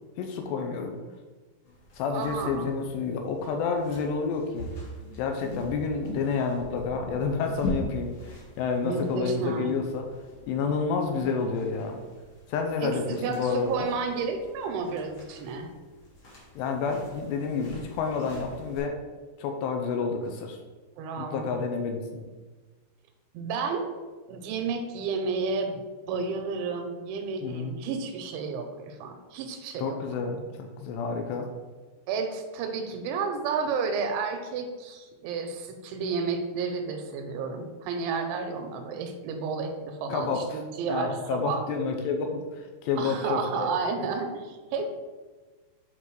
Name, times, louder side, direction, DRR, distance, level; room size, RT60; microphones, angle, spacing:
voice 1, 0.2-0.9 1.9-4.7 5.2-8.1 8.6-10.0 10.5-12.1 12.5-13.9 16.6-19.0 19.4-20.6 21.2-22.2 27.4-27.7 29.8-31.5 40.1-40.6 40.9-43.7, left 5 dB, 80° left, 4 dB, 2.7 m, -29 dB
sound 1, 1.6-18.8, left 1 dB, 50° left, 1.6 m, -42 dB
voice 2, 2.1-2.7 8.8-9.7 12.8-15.7 21.0-21.6 23.3-23.9 24.3-25.8 26.1-30.0 32.1-41.6 43.0-44.8, right 5 dB, 85° right, 5 dB, 3.1 m, -31 dB
8.1 x 3.9 x 4.6 m, 1.3 s
omnidirectional pair, 5.2 m